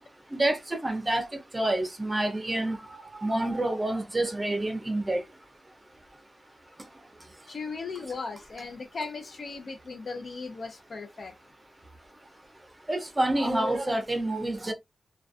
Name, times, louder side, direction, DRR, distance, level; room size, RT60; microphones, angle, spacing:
voice 1, 0.3-1.3 1.5-2.8 3.2-5.2 12.9-14.7, right 1 dB, 20° right, 0.6 m, -27 dB
voice 2, 7.5-11.3, left 4 dB, 55° left, 0.5 m, -37 dB
2.3 x 2.2 x 2.4 m
wide cardioid pair, 110°, 0 cm